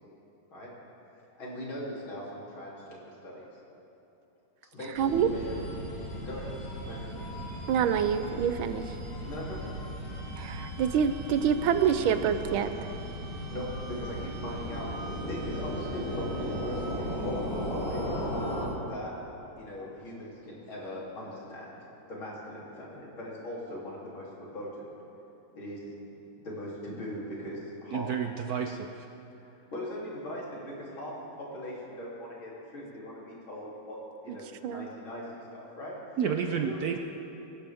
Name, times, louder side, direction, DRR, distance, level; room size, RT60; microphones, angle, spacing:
voice 1, 1.1-3.5 4.7-5.6 6.2-7.3 9.2-9.7 13.5-18.0 18.8-19.2 19.6-21.8 22.1-24.7 25.5-25.8 26.4-28.1 29.4-34.0 34.2-36.8, left 1 dB, 85° left, -5 dB, 4.0 m, -40 dB
sound 1, 4.9-18.7, equal, 30° left, 3.0 m, -36 dB
voice 2, 5.0-5.3 7.7-8.8 10.4-12.7 34.6-34.9, right 8 dB, 85° right, 11 dB, 1.5 m, -26 dB
voice 3, 27.9-28.9 36.2-37.0, right 7 dB, 70° right, 4 dB, 0.9 m, -30 dB
23.5 x 12.0 x 3.5 m, 3.0 s
omnidirectional pair, 2.2 m